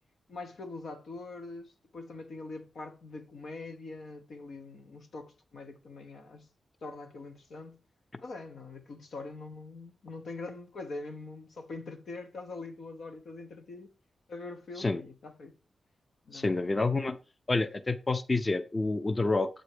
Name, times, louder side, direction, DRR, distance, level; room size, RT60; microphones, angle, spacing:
voice 1, 0.3-6.5 6.8-7.8 8.2-13.9 14.3-15.6 16.2-16.8, left 3 dB, 80° left, 0.9 m, -43 dB
voice 2, 16.3-17.1 17.5-19.5, left 3 dB, 30° left, 0.6 m, -28 dB
7.8 x 4.0 x 4.9 m
cardioid pair, 85°, 0 cm